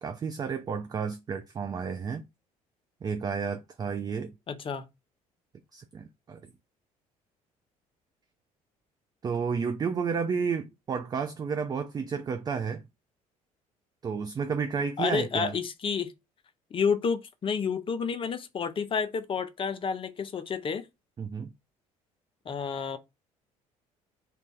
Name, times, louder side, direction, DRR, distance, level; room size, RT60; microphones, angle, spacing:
voice 1, 0.0-2.3 3.0-4.3 5.7-6.5 9.2-12.8 14.0-15.5 21.2-21.5, right 6 dB, 20° right, 0.4 m, -31 dB
voice 2, 4.5-4.9 15.0-16.1 16.7-20.9 22.5-23.0, left 6 dB, 30° left, 0.6 m, -30 dB
2.5 x 2.3 x 3.6 m
figure-of-eight pair, 55°, 19 cm